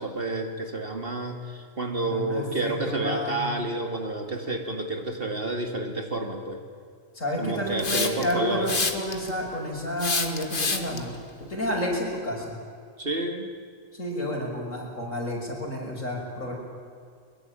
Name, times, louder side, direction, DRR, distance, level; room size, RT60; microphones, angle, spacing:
voice 1, 0.0-6.6 7.4-8.8 13.0-13.5, right 2 dB, 45° right, 4 dB, 2.5 m, -30 dB
voice 2, 2.0-3.4 7.1-12.6 13.9-16.5, left 1 dB, 70° left, -1 dB, 6.5 m, -30 dB
Hiss, 7.8-8.3 8.7-9.3 10.0-11.0, left 3 dB, 40° left, 1.9 m, -27 dB
22.0 x 22.0 x 9.0 m, 2.2 s
omnidirectional pair, 1.4 m